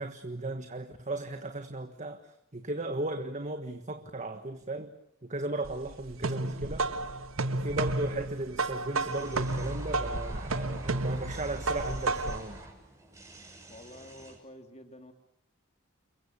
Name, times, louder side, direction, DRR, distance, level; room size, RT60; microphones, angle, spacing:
voice 1, 0.0-4.9 5.2-6.9 7.5-12.6, right 2 dB, 35° right, 7 dB, 1.5 m, -36 dB
sound 1, 5.6-12.5, right 2 dB, 85° right, 1.3 m, -32 dB
sound 2, 9.0-14.4, right 1 dB, 15° right, 6.0 m, -42 dB
voice 2, 13.7-15.1, left 1 dB, 35° left, 5 dB, 2.5 m, -49 dB
29.0 x 22.5 x 7.2 m, 0.76 s
head